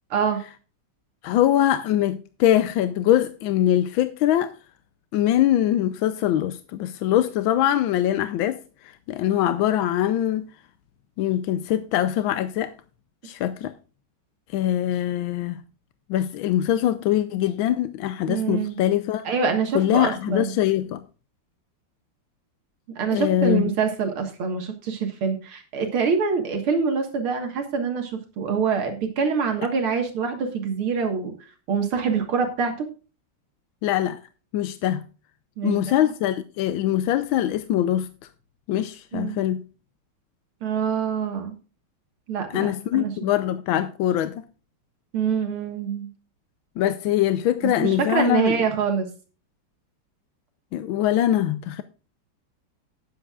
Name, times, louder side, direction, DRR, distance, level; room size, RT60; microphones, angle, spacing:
voice 1, 0.1-0.4 18.3-18.8 19.2-20.6 23.0-31.3 31.7-32.7 35.6-36.1 39.1-39.4 40.6-41.5 42.3-43.1 45.1-46.1 47.6-49.1, right 6 dB, 75° right, 2.4 m, -25 dB
voice 2, 1.2-4.5 5.1-10.4 11.2-12.7 13.2-13.7 14.5-15.6 16.1-19.2 19.7-21.0 23.1-23.7 33.8-34.2 34.5-35.0 35.6-38.1 38.7-39.6 42.5-44.4 46.8-48.6 50.7-51.8, left 12 dB, 75° left, 1.3 m, -23 dB
18.5 x 7.5 x 2.4 m
omnidirectional pair, 2.4 m